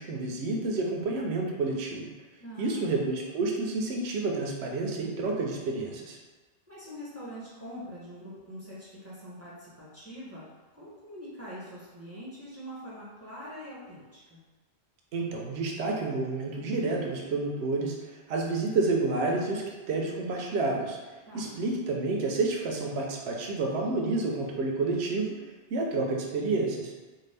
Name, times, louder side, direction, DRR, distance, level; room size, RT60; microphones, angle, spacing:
voice 1, 0.0-2.1 2.6-6.2 15.1-26.9, right 3 dB, 80° right, 0 dB, 0.8 m, -30 dB
voice 2, 2.4-3.0 6.7-10.4 10.8-14.4 21.3-21.6, equal, 15° right, -9 dB, 0.7 m, -43 dB
2.6 x 2.4 x 3.3 m, 1.2 s
omnidirectional pair, 1.1 m